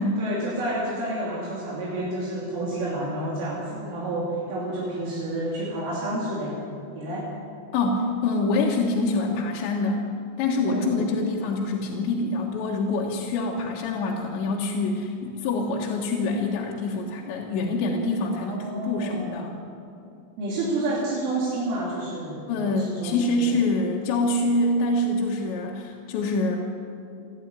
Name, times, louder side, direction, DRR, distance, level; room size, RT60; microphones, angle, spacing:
voice 1, 0.2-7.3 10.6-11.0 18.3-19.4 20.4-23.6, right 1 dB, 75° right, -4 dB, 5.4 m, -30 dB
voice 2, 7.7-10.0 10.4-19.5 22.5-26.6, left 2 dB, 70° left, -2 dB, 3.6 m, -25 dB
29.0 x 11.5 x 9.7 m, 2.6 s
omnidirectional pair, 5.7 m